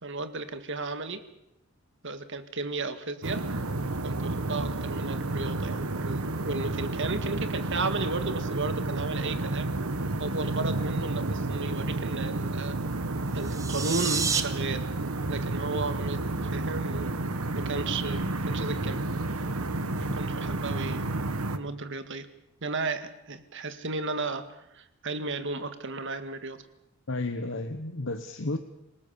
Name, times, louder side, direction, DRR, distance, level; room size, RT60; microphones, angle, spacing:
voice 1, 0.0-1.2 2.0-3.4 4.0-9.7 10.2-12.8 13.3-14.9 15.3-17.1 17.5-19.0 20.0-21.1 21.5-22.3 22.6-24.5 24.7-26.6, right 3 dB, 60° right, 10 dB, 1.9 m, -34 dB
sound 1, 3.2-21.6, right 2 dB, 80° right, 1.4 m, -31 dB
sound 2, 13.4-14.4, right 5 dB, 15° right, 1.4 m, -29 dB
voice 2, 27.1-28.6, left 2 dB, 60° left, 7 dB, 1.2 m, -32 dB
27.0 x 18.5 x 7.0 m, 0.84 s
head